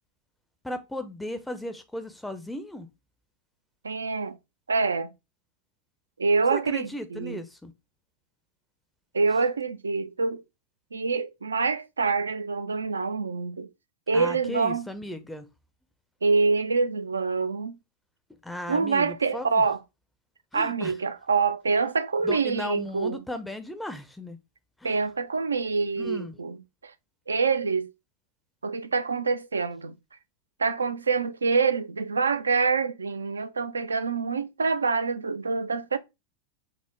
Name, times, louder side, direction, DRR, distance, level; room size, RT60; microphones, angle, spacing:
voice 1, 0.6-2.9 6.5-7.7 14.1-15.5 18.4-19.6 20.5-20.9 22.2-24.4 24.8-25.0 26.0-26.4, left 1 dB, 5° left, 0.5 m, -36 dB
voice 2, 3.8-4.4 4.7-5.1 6.2-7.4 9.1-10.4 10.9-13.7 14.1-14.9 16.2-17.8 18.7-19.8 20.5-23.2 24.8-26.9 27.3-27.9 28.6-30.0 30.6-36.0, right 4 dB, 75° right, 0.3 m, -26 dB
4.5 x 2.0 x 3.5 m
figure-of-eight pair, 90°, 0 cm